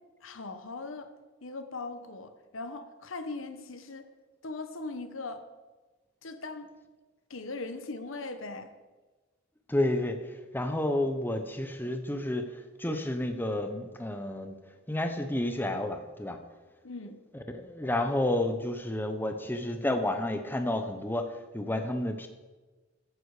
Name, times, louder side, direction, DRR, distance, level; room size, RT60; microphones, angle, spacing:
voice 1, 0.2-1.1 1.4-4.1 4.4-5.4 6.2-6.7 7.3-8.7 16.8-17.2, left 3 dB, 70° left, 9 dB, 1.1 m, -39 dB
voice 2, 9.7-10.2 10.5-12.4 12.8-14.5 14.9-16.4 17.5-21.3 21.5-22.3, left 1 dB, 10° left, 6 dB, 0.9 m, -30 dB
14.5 x 9.6 x 4.9 m, 1.3 s
head